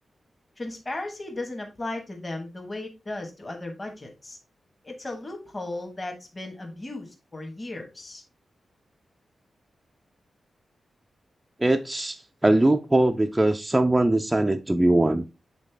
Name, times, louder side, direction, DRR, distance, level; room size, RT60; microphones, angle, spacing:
voice 1, 0.6-4.4 4.8-8.2, left 2 dB, 20° left, 2 dB, 1.2 m, -36 dB
voice 2, 11.6-15.2, right 1 dB, 10° right, 5 dB, 0.3 m, -21 dB
7.4 x 4.0 x 3.3 m, 0.27 s
wide cardioid pair, 175°, 0 cm